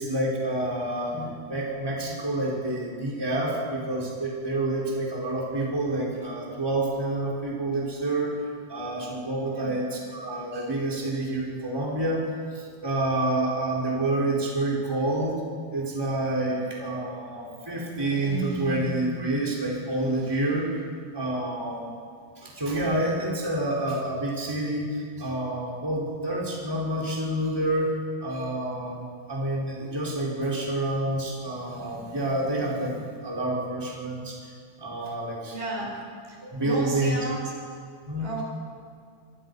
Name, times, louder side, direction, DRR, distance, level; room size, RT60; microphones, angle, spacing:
voice 1, 0.0-8.3 8.7-12.2 12.5-15.4 15.7-20.7 21.1-21.9 22.4-27.9 28.2-34.5 34.8-35.5 36.4-37.2 38.1-38.3, right 1 dB, 5° right, -3 dB, 4.2 m, -28 dB
voice 2, 35.5-35.9 36.3-37.4 38.2-38.4, right 1 dB, 70° right, -1 dB, 6.5 m, -34 dB
27.0 x 24.0 x 5.6 m, 2.1 s
omnidirectional pair, 4.6 m